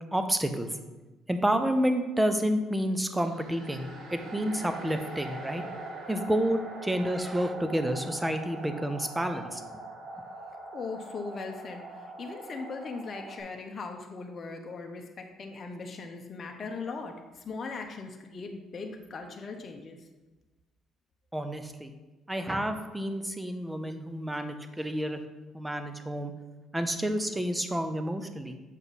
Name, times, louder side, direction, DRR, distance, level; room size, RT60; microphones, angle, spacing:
voice 1, 0.1-0.7 1.3-5.6 6.1-9.6 21.3-21.9 22.3-25.2 25.5-26.3 26.7-28.6, right 1 dB, 10° right, 8 dB, 0.8 m, -29 dB
sound 1, 2.9-13.4, right 2 dB, 70° right, 1.9 m, -43 dB
voice 2, 10.7-20.0, left 4 dB, 40° left, 3 dB, 0.9 m, -39 dB
7.4 x 5.2 x 4.1 m, 1.1 s
cardioid pair, 90°, 0 cm